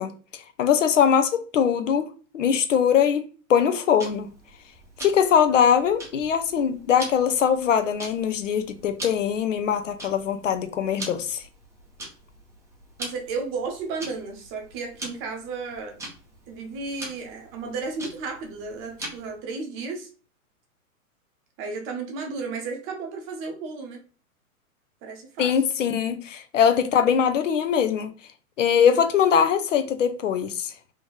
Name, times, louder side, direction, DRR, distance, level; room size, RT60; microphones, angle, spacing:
voice 1, 0.0-3.2 3.5-4.3 5.0-11.4 25.4-28.1 28.6-30.7, left 8 dB, 60° left, 0.7 m, -22 dB
Tick-tock, 4.0-19.4, right 1 dB, 5° right, 0.7 m, -42 dB
voice 2, 13.0-16.0 16.5-20.1 21.6-24.0 25.0-25.5, right 4 dB, 30° right, 1.0 m, -33 dB
3.5 x 3.0 x 3.2 m
figure-of-eight pair, 110°, 43 cm